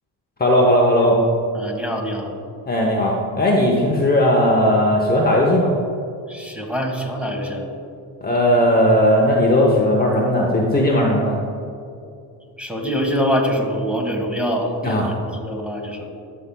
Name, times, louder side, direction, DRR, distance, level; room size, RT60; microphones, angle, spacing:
voice 1, 0.4-1.2 2.7-5.8 8.2-11.4 14.8-15.1, left 1 dB, 20° left, -2 dB, 0.9 m, -17 dB
voice 2, 1.5-2.3 6.3-7.6 12.6-16.1, equal, 5° right, 0 dB, 1.4 m, -24 dB
13.5 x 5.7 x 2.3 m, 2.5 s
cardioid pair, 85°, 42 cm